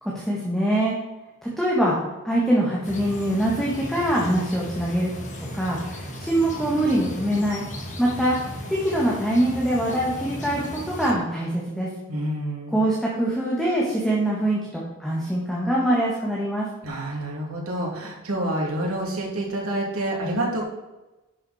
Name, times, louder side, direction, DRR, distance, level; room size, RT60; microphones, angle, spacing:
voice 1, 0.0-1.0 1.4-2.0 2.2-5.1 5.5-7.6 8.0-8.4 8.7-11.9 12.7-16.7, right 1 dB, ahead, -5 dB, 1.6 m, -23 dB
sound 1, 2.8-11.1, equal, 35° left, 1.8 m, -36 dB
voice 2, 12.1-12.8 16.8-20.6, right 1 dB, 80° right, -2 dB, 2.7 m, -28 dB
10.5 x 6.6 x 4.2 m, 1.1 s
head